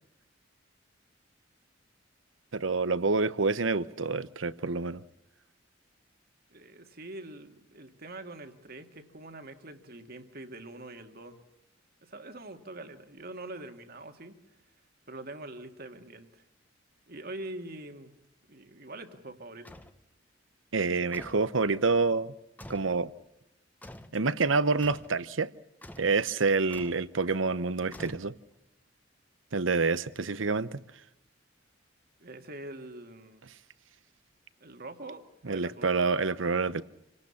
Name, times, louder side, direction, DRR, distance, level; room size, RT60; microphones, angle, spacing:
voice 1, 2.5-5.0 20.7-22.3 22.7-23.1 24.1-25.5 26.0-28.3 29.5-30.8 35.4-36.8, right 4 dB, 90° right, 0.9 m, -27 dB
voice 2, 6.5-11.4 12.0-14.4 15.1-16.4 17.1-18.1 18.5-19.8 32.2-33.5 34.6-35.9, right 2 dB, 50° right, 2.2 m, -44 dB
sound 1, 19.7-20.0 21.1-21.5 22.6-23.0 23.8-24.2 24.8-25.2 25.8-26.2 26.7-27.1 27.9-28.6, left 1 dB, 10° left, 1.2 m, -47 dB
27.0 x 18.5 x 7.2 m
head